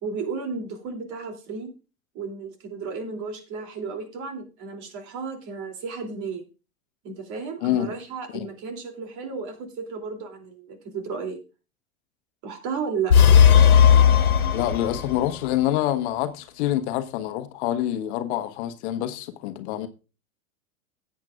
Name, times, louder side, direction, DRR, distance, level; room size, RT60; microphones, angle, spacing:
voice 1, 0.0-1.7 2.1-6.4 7.0-11.4 12.4-13.1, right 5 dB, 45° right, 2.9 m, -33 dB
voice 2, 7.6-7.9 8.3-8.5 14.5-19.9, left 12 dB, 55° left, 1.1 m, -26 dB
sound 1, 13.1-15.4, left 8 dB, 85° left, 1.4 m, -15 dB
16.5 x 8.3 x 2.4 m
hypercardioid pair, 95°, 42 cm